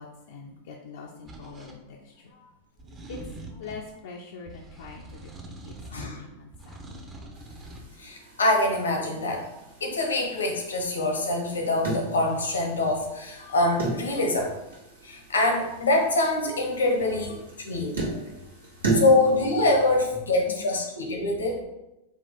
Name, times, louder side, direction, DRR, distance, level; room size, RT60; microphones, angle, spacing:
voice 1, 0.0-2.5 3.1-3.2 3.5-5.3 5.6-7.1 17.6-19.0 20.5-20.7, left 5 dB, 70° left, -1 dB, 0.4 m, -44 dB
sound 1, 1.3-1.8 2.8-3.9 4.5-6.2 6.5-7.9, right 1 dB, 25° right, 0.6 m, -43 dB
voice 2, 5.9-6.3 8.0-9.5 9.8-14.5 15.0-17.4 17.6-18.0 18.9-21.6, left 2 dB, 85° left, 2 dB, 0.8 m, -24 dB
sound 2, 7.3-20.1, right 3 dB, 85° right, 1.2 m, -35 dB
4.1 x 2.3 x 3.6 m, 0.97 s
hypercardioid pair, 100°, 0 cm